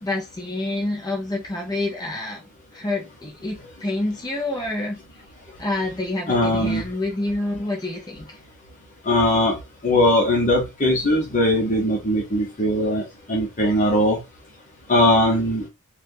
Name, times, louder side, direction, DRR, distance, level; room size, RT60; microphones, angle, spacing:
voice 1, 0.0-2.4 2.7-5.0 5.6-8.3, left 2 dB, 20° left, 0 dB, 0.7 m, -27 dB
voice 2, 6.3-6.9 9.0-9.6 9.8-14.2 14.9-15.6, left 1 dB, 35° left, 0 dB, 1.1 m, -20 dB
4.2 x 2.5 x 2.6 m, 0.24 s
head